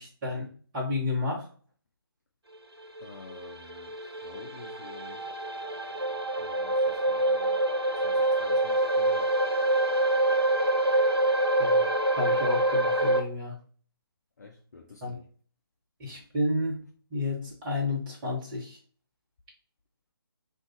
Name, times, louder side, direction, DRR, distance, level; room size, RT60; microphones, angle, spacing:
voice 1, 0.0-1.4 11.6-11.8 12.1-13.5 15.0-15.2 16.0-16.8 17.1-18.8, left 2 dB, 20° right, 0.9 m, -31 dB
sound 1, 2.8-13.2, right 1 dB, 85° right, 0.6 m, -26 dB
voice 2, 3.0-3.9 4.2-5.2 6.4-7.6 8.0-9.3 14.4-15.2, left 3 dB, 45° left, 0.5 m, -49 dB
2.4 x 2.3 x 3.8 m
figure-of-eight pair, 145°, 13 cm